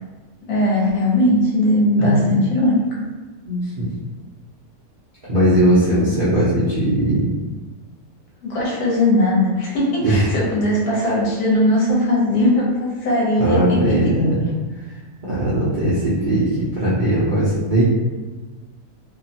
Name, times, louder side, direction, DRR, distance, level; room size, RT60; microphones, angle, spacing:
voice 1, 0.5-3.0 5.8-6.3 8.4-13.6 14.0-14.3 16.2-16.3, left 1 dB, 75° left, -5 dB, 1.3 m, -19 dB
voice 2, 2.0-2.3 3.5-3.9 5.3-7.3 10.0-10.3 13.4-14.4 15.2-17.8, right 1 dB, 65° right, -9 dB, 0.4 m, -19 dB
2.9 x 2.1 x 2.7 m, 1.2 s
omnidirectional pair, 1.7 m